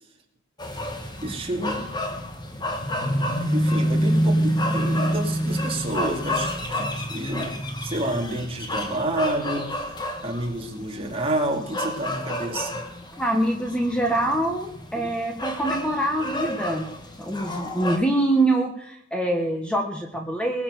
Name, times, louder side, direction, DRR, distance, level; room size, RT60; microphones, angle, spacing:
sound 1, 0.6-18.0, equal, 20° left, 1.6 m, -28 dB
voice 1, 1.2-1.9 3.5-12.8, right 1 dB, 30° right, 1 dB, 2.6 m, -29 dB
voice 2, 13.2-16.9 17.2-20.6, right 1 dB, 5° left, 2 dB, 1.3 m, -24 dB
21.0 x 7.1 x 6.8 m, 0.72 s
head